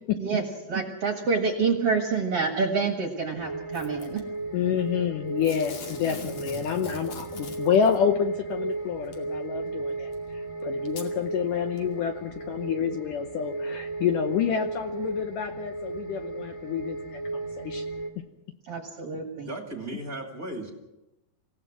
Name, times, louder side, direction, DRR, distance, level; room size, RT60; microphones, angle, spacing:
voice 1, 0.2-4.2 18.6-19.5, right 4 dB, 50° right, 3 dB, 2.1 m, -27 dB
sound 1, 3.3-18.1, right 3 dB, 10° left, 1.8 m, -35 dB
Packing tape duct tape / Tearing, 3.7-4.2 5.4-8.0 9.1-9.2 10.1-10.2 10.9-11.1 11.8-11.9, left 4 dB, 45° left, 3.3 m, -42 dB
voice 2, 4.5-17.2 17.6-17.9 18.2-18.3, left 8 dB, 70° left, 6 dB, 2.1 m, -28 dB
voice 3, 19.4-20.7, right 2 dB, 25° right, 2 dB, 2.2 m, -36 dB
27.0 x 17.0 x 6.1 m, 0.95 s
omnidirectional pair, 4.7 m